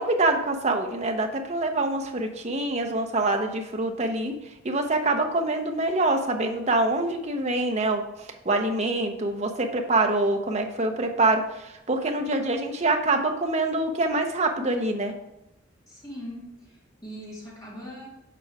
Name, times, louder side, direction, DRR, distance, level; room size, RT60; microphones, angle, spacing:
voice 1, 0.0-4.4 4.6-8.0 8.4-15.1, right 2 dB, 30° right, 4 dB, 0.7 m, -25 dB
voice 2, 15.9-18.1, equal, 20° left, -6 dB, 2.5 m, -41 dB
6.9 x 4.7 x 4.7 m, 0.88 s
head